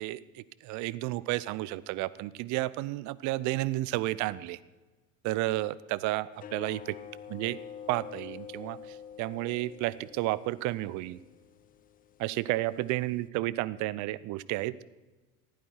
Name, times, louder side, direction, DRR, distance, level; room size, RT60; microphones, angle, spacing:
voice 1, 0.0-4.6 5.2-7.0 7.3-7.6 7.9-11.2 12.2-14.7, right 17 dB, 45° right, 19 dB, 0.6 m, -32 dB
sound 1, 6.3-13.3, left 8 dB, 20° left, 0.5 m, -47 dB
15.5 x 12.0 x 4.5 m, 1.2 s
hypercardioid pair, 80°, 39 cm